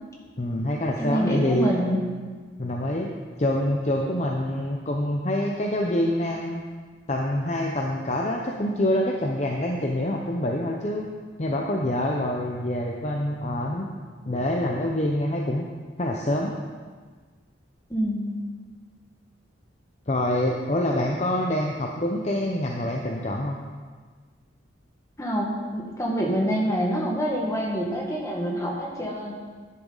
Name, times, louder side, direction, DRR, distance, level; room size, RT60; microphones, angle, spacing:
voice 1, 0.4-1.7 2.6-3.1 3.4-6.6 7.1-11.1 11.4-13.9 14.3-15.7 16.0-16.5 20.1-23.6, left 1 dB, 35° left, 0 dB, 0.7 m, -26 dB
voice 2, 1.0-2.0 17.9-18.4 25.2-29.3, equal, 15° left, -2 dB, 1.7 m, -26 dB
11.0 x 10.5 x 4.0 m, 1.5 s
head